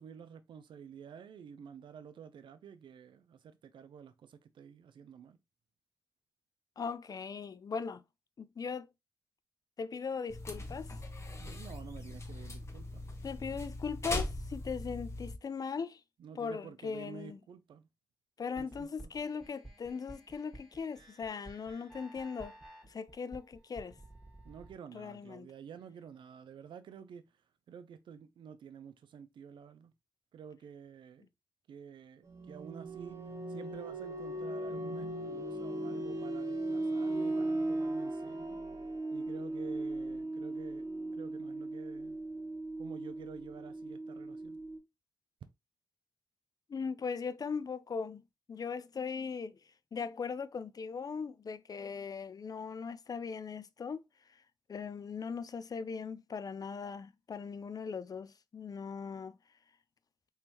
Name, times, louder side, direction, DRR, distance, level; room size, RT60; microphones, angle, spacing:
voice 1, 0.0-5.4 11.4-13.1 16.2-17.9 18.6-19.1 24.4-27.3 27.7-29.9 30.3-31.3 31.7-33.2 33.5-38.6 39.1-40.8 41.1-42.2 42.8-44.6, right 7 dB, 80° right, 0.5 m, -50 dB
voice 2, 6.8-8.0 8.4-8.9 9.8-10.9 13.2-16.0 16.4-17.4 18.4-22.5 22.8-24.0 24.9-25.5 46.7-48.2 48.5-49.6 49.9-54.0 54.7-59.3, left 5 dB, 50° left, 0.4 m, -39 dB
sound 1, 10.3-15.4, left 2 dB, 35° left, 1.0 m, -40 dB
sound 2, 18.6-24.7, right 1 dB, 5° left, 1.6 m, -53 dB
sound 3, 32.3-44.8, right 2 dB, 40° right, 1.3 m, -37 dB
3.4 x 3.1 x 2.9 m
cardioid pair, 50°, 8 cm